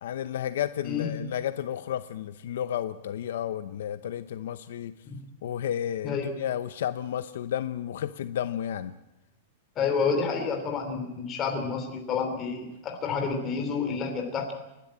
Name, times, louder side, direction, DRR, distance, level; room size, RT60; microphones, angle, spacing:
voice 1, 0.0-4.9 5.4-8.9, left 10 dB, 65° left, 12 dB, 0.8 m, -32 dB
voice 2, 9.7-14.5, left 5 dB, 20° left, 4 dB, 3.1 m, -29 dB
29.5 x 12.0 x 8.8 m, 0.95 s
supercardioid pair, 175°, 0 cm